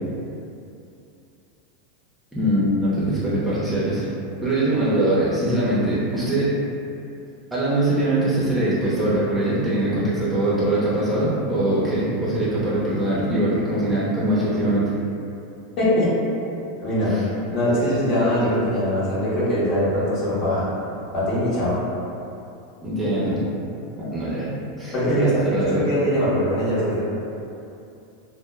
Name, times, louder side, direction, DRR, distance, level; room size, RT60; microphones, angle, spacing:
voice 1, 2.3-4.0 4.4-6.6 7.5-14.9 17.1-17.2 22.8-23.4 24.0-24.5 24.8-25.8, right 1 dB, 10° right, -10 dB, 0.6 m, -22 dB
voice 2, 15.8-16.1 16.8-17.2 17.5-20.7 21.1-21.8 24.9-27.0, equal, 45° left, -9 dB, 0.9 m, -22 dB
2.0 x 2.0 x 3.1 m, 2.7 s
hypercardioid pair, 105°, 0 cm